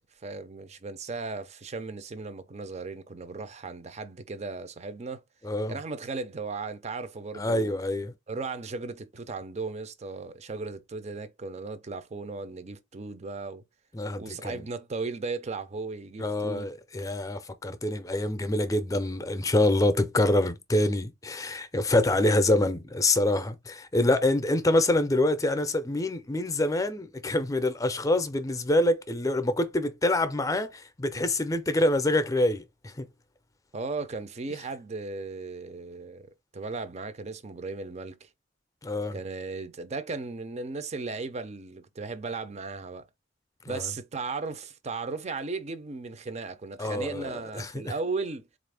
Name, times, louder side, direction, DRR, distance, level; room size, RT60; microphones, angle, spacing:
voice 1, 0.2-5.2 5.7-7.8 8.3-13.6 14.2-16.7 33.7-38.3 39.1-43.1 43.7-48.5, right 3 dB, 35° right, 0.5 m, -36 dB
voice 2, 5.4-5.8 7.3-8.1 13.9-14.6 16.2-33.1 38.8-39.2 43.6-43.9 46.8-47.9, left 1 dB, 20° left, 0.5 m, -26 dB
4.0 x 2.5 x 3.4 m
head